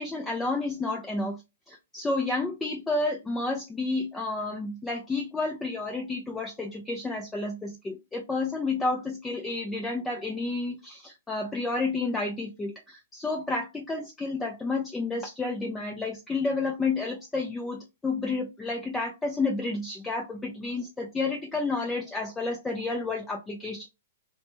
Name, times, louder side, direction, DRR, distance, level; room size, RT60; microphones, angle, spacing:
voice 1, 0.0-1.4 1.7-23.9, left 3 dB, 10° left, 1 dB, 0.4 m, -30 dB
3.0 x 2.1 x 2.9 m, 0.24 s
hypercardioid pair, 150°, 0 cm